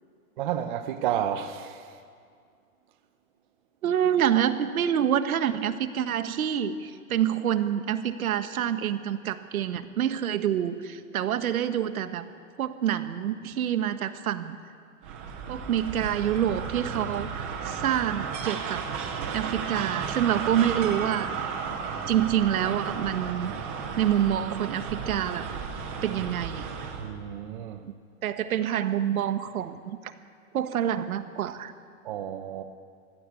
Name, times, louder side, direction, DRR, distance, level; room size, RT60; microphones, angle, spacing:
voice 1, 0.4-2.0 27.0-27.8 32.0-32.6, right 10 dB, 35° right, 0.8 m, -31 dB
voice 2, 3.8-12.2 12.6-14.6 15.5-17.3 17.6-18.8 19.3-21.3 22.1-23.5 24.0-25.4 26.0-26.7 27.8-27.9 28.2-29.8 30.5-31.7, right 10 dB, 70° right, 1.5 m, -27 dB
sound 1, 15.0-27.1, right 6 dB, 10° right, 0.5 m, -34 dB
23.5 x 16.0 x 8.5 m
hypercardioid pair, 165°, 44 cm